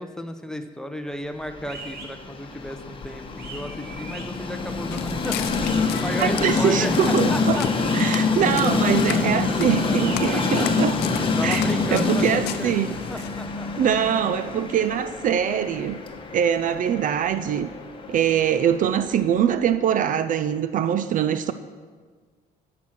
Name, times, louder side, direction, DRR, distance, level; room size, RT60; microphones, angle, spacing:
voice 1, 0.0-7.7 8.4-8.9 9.2-9.3 10.2-10.7 11.4-13.7 14.2-14.3, equal, 5° left, 7 dB, 0.8 m, -34 dB
Train, 1.5-19.5, left 4 dB, 30° left, 1.3 m, -26 dB
sound 1, 1.6-2.1 3.4-4.2 5.6-6.3 7.5-8.0 9.9-10.7, right 4 dB, 70° right, 2.0 m, -40 dB
Walk footsteps, 4.8-13.5, left 11 dB, 80° left, 0.7 m, -36 dB
voice 2, 6.2-7.6 7.9-10.9 11.4-11.6 11.9-13.0 13.8-16.0 16.3-17.7 18.1-21.5, right 9 dB, 50° right, 12 dB, 0.5 m, -23 dB
13.5 x 6.0 x 6.1 m, 1.5 s
cardioid pair, 110°, 17 cm